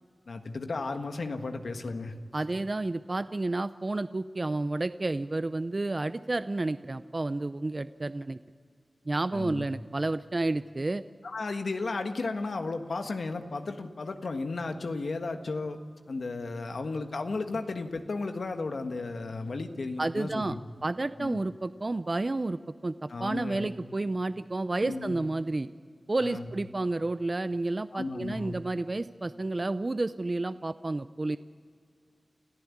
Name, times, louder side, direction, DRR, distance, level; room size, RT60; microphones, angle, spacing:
voice 1, 0.3-2.1 9.3-9.7 11.2-15.8 16.1-20.6 21.2-21.4 23.1-23.7 24.8-25.1 26.2-26.5 27.9-28.6, left 3 dB, 80° left, 6 dB, 1.5 m, -34 dB
voice 2, 2.3-8.4 9.1-11.0 20.0-25.7 26.1-31.4, right 2 dB, 45° right, 12 dB, 0.6 m, -31 dB
29.5 x 14.0 x 8.6 m, 2.1 s
cardioid pair, 40°, 0 cm